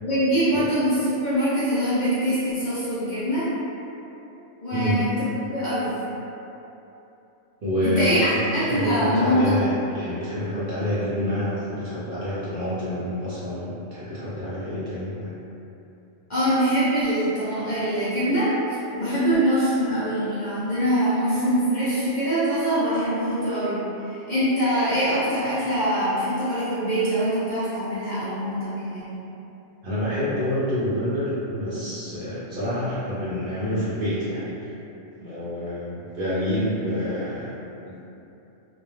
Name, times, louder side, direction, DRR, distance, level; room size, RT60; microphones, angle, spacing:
voice 1, 0.0-3.5 4.6-5.1 5.5-5.9 7.8-8.2 8.5-9.5 16.3-29.2, equal, 50° left, -12 dB, 0.6 m, -23 dB
voice 2, 4.7-5.0 7.6-8.3 8.6-15.3 29.8-34.7 35.2-37.5 37.8-38.0, equal, 60° right, -10 dB, 0.6 m, -27 dB
2.2 x 2.2 x 3.1 m, 2.9 s
omnidirectional pair, 1.3 m